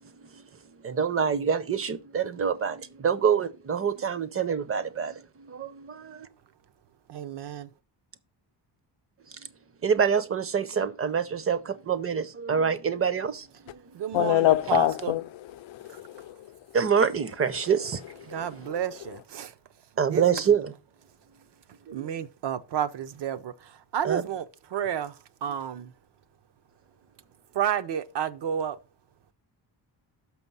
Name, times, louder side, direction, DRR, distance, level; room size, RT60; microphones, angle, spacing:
voice 1, 0.8-5.1 5.6-6.3 9.8-13.8 16.7-18.3 20.0-20.7 21.9-22.1 24.0-24.2 25.5-25.6, right 7 dB, 30° right, 0.5 m, -26 dB
voice 2, 7.1-7.7 13.9-15.1 18.3-19.5 20.1-20.4 21.9-24.4 24.7-25.1 25.4-25.9 27.5-28.8, right 9 dB, 65° right, 0.7 m, -31 dB
voice 3, 14.1-16.5 18.4-18.7, left 14 dB, 90° left, 0.6 m, -26 dB
6.0 x 5.8 x 5.4 m
wide cardioid pair, 160°, 44 cm